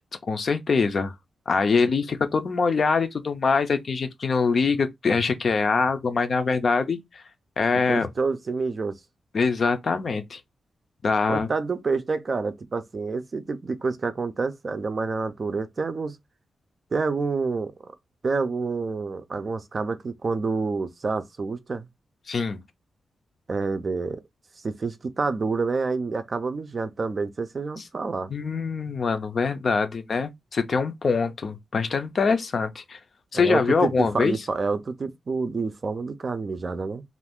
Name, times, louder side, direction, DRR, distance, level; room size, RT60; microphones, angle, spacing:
voice 1, 0.3-1.1 1.5-7.2 7.6-8.1 9.3-10.4 11.0-11.5 22.3-22.6 27.8-27.9 28.3-33.0 33.3-34.3, left 4 dB, 50° left, 0.5 m, -24 dB
voice 2, 7.9-9.0 11.3-16.2 16.9-17.7 18.2-21.9 23.5-24.2 24.6-28.3 33.3-37.0, right 4 dB, 40° right, 0.4 m, -28 dB
2.5 x 2.4 x 3.5 m
wide cardioid pair, 110°, 0 cm